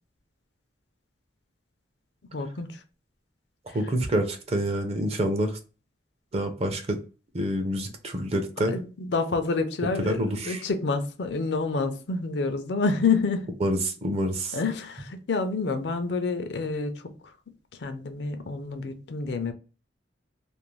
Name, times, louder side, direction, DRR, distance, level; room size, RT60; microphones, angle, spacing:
voice 1, 2.3-2.8 3.7-3.8 8.7-13.5 14.5-17.0 17.8-19.5, left 4 dB, 65° left, 0.5 m, -28 dB
voice 2, 3.7-5.6 6.3-7.0 7.3-8.7 10.0-10.6 13.6-14.6, right 1 dB, 35° right, 0.5 m, -27 dB
2.5 x 2.0 x 3.0 m
head